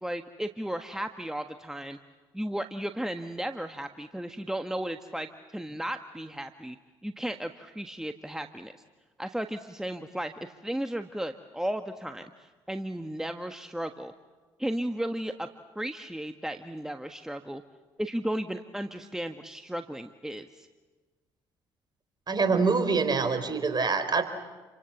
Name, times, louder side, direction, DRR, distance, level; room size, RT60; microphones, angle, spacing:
voice 1, 0.0-2.0 2.3-6.8 7.0-8.7 9.2-14.1 14.6-15.5 15.7-17.6 18.0-20.7, right 1 dB, 5° right, 7 dB, 1.5 m, -34 dB
voice 2, 22.3-24.2, right 4 dB, 35° right, 9 dB, 4.4 m, -25 dB
29.0 x 25.0 x 7.3 m, 1.3 s
hypercardioid pair, 55°, 12 cm